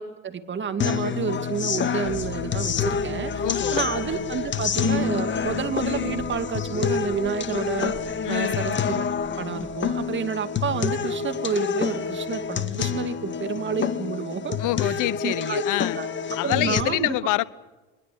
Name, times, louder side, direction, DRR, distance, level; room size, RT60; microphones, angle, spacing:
voice 1, 0.0-3.5 3.7-7.9 8.3-9.1 9.4-14.6 14.8-15.6 16.0-16.1 16.4-17.2, right 6 dB, 25° right, 2.5 m, -30 dB
sound 1, 0.8-16.8, left 6 dB, 25° left, 1.9 m, -27 dB
sound 2, 2.0-10.2, right 4 dB, 5° right, 3.8 m, -44 dB
voice 2, 3.4-3.9 8.2-8.7 14.6-16.0 16.4-17.4, left 17 dB, 45° left, 1.1 m, -26 dB
23.5 x 21.0 x 8.8 m
hypercardioid pair, 100°, 42 cm